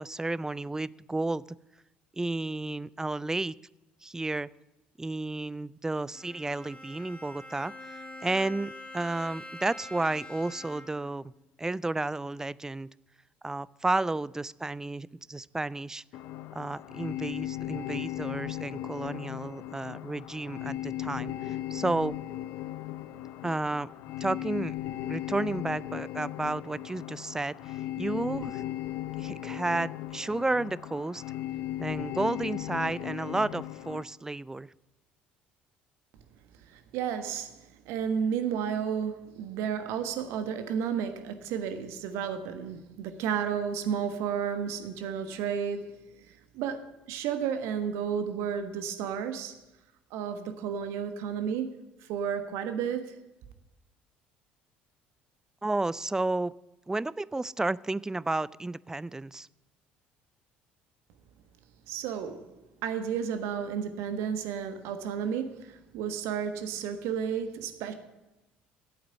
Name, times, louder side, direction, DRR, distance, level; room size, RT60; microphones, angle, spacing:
voice 1, 0.0-1.4 2.1-3.5 4.0-4.5 5.0-11.3 11.6-12.9 13.4-16.0 16.5-22.2 23.4-23.9 24.2-24.7 25.1-28.6 29.2-31.2 31.8-34.7 55.6-56.5 56.9-59.5, right 2 dB, 10° right, 22 dB, 0.3 m, -32 dB
Bowed string instrument, 6.1-11.2, left 1 dB, 20° left, 2.2 m, -45 dB
Synth Wave, 16.1-34.0, left 14 dB, 60° left, 0.5 m, -37 dB
voice 2, 36.6-46.0 46.5-49.6 50.1-53.1 61.9-62.5 62.8-67.9, right 7 dB, 65° right, 9 dB, 1.3 m, -32 dB
11.5 x 8.7 x 6.9 m, 1.0 s
figure-of-eight pair, 55°, 5 cm